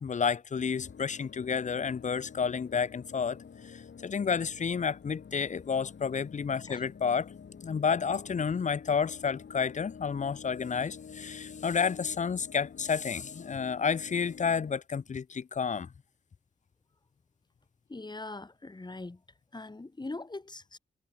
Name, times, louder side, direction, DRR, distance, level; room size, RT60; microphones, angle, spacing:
voice 1, 0.0-3.4 3.7-7.3 7.6-15.9, left 6 dB, 45° left, 0.6 m, -30 dB
sound 1, 0.5-14.8, left 6 dB, 80° left, 5.9 m, -48 dB
voice 2, 17.9-19.2 19.5-20.8, left 2 dB, 25° left, 3.5 m, -41 dB
wide cardioid pair, 140°, 18 cm